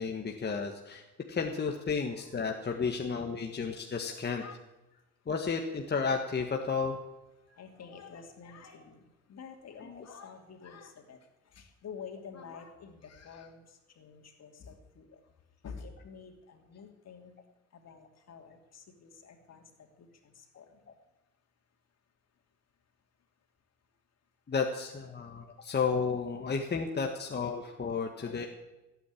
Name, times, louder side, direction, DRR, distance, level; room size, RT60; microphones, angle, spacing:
voice 1, 0.0-4.4 5.3-7.0 10.0-10.2 24.5-28.5, left 5 dB, 35° left, 3 dB, 1.6 m, -32 dB
voice 2, 4.1-4.6 7.6-11.2 11.5-15.2 15.6-17.3 17.7-20.8 28.2-28.5, left 6 dB, 60° left, 4 dB, 3.0 m, -49 dB
16.0 x 9.0 x 8.5 m, 1.0 s
cardioid pair, 90°, 30 cm